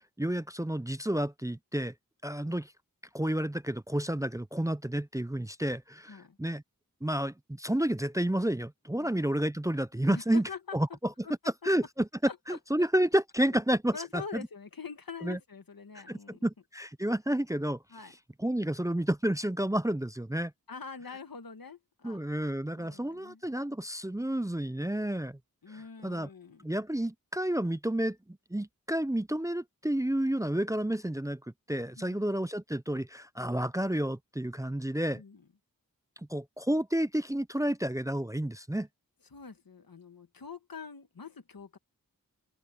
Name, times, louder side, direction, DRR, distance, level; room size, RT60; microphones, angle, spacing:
voice 1, 0.0-1.9 2.2-2.7 3.1-6.6 7.0-10.4 10.7-10.9 11.6-12.1 12.5-14.5 15.2-15.4 16.1-17.8 18.4-20.5 22.0-25.4 26.0-26.3 26.6-28.2 28.5-31.4 31.7-35.2 36.3-38.9, right 1 dB, 10° right, 0.5 m, -30 dB
voice 2, 10.1-11.0 11.2-11.7 12.2-12.9 13.5-13.6 13.9-16.5 17.9-18.1 20.7-22.2 22.7-23.4 25.6-26.7 32.0-32.3 35.1-35.5 39.3-41.8, left 5 dB, 85° left, 1.7 m, -45 dB
open air
wide cardioid pair, 50°, 34 cm